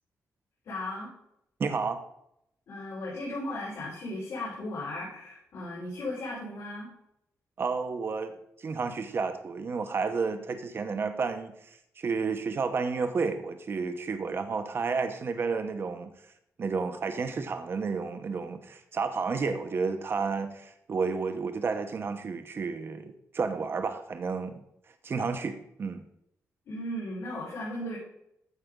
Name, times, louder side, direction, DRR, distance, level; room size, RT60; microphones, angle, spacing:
voice 1, 0.6-1.1 2.7-6.9 26.7-28.0, left 1 dB, 75° left, -8 dB, 4.6 m, -36 dB
voice 2, 1.6-2.0 7.6-11.5 12.0-16.1 16.6-24.6 25.0-26.0, right 4 dB, 45° right, 7 dB, 1.0 m, -31 dB
15.0 x 5.9 x 3.8 m, 0.77 s
wide cardioid pair, 150°, 6 cm